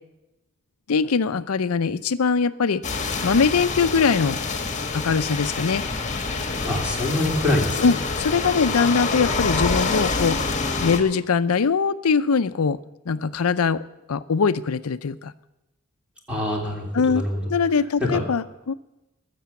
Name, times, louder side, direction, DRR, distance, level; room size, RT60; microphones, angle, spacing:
voice 1, 0.9-2.8 3.2-4.4 4.9-5.8 7.8-10.4 10.8-12.8 13.1-13.8 14.1-15.3 16.9-17.2 17.5-18.7, left 5 dB, 85° left, 14 dB, 0.6 m, -22 dB
sound 1, 2.8-11.0, left 3 dB, 35° left, 1.5 m, -26 dB
voice 2, 6.6-7.9 16.3-17.4 18.1-18.2, left 1 dB, 5° right, -1 dB, 2.9 m, -25 dB
20.5 x 6.9 x 7.0 m, 0.96 s
head